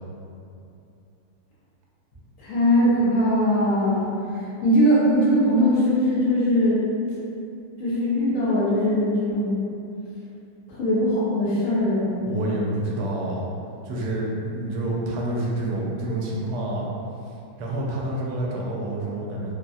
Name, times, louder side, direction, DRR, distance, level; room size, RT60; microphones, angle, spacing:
voice 1, 2.4-4.1 4.6-6.8 7.8-9.6 10.8-12.3, equal, 65° left, -9 dB, 1.0 m, -20 dB
voice 2, 12.3-13.4 13.8-16.9 17.6-19.5, right 1 dB, 85° right, -3 dB, 1.1 m, -28 dB
3.3 x 2.1 x 2.6 m, 2.6 s
omnidirectional pair, 1.6 m